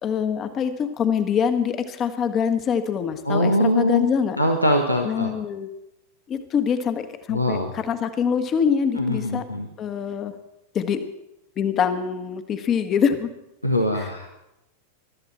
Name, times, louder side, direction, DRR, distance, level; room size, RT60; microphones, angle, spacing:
voice 1, 0.0-4.4 5.0-5.7 6.3-9.4 9.8-10.3 10.7-11.0 11.6-13.3 14.0-14.1, left 7 dB, 30° left, 10 dB, 1.4 m, -24 dB
voice 2, 3.2-4.1 4.4-5.3 7.3-7.7 8.9-9.7 13.6-14.3, left 1 dB, 90° left, 3 dB, 1.3 m, -22 dB
22.0 x 13.0 x 4.3 m, 0.90 s
figure-of-eight pair, 90°, 0 cm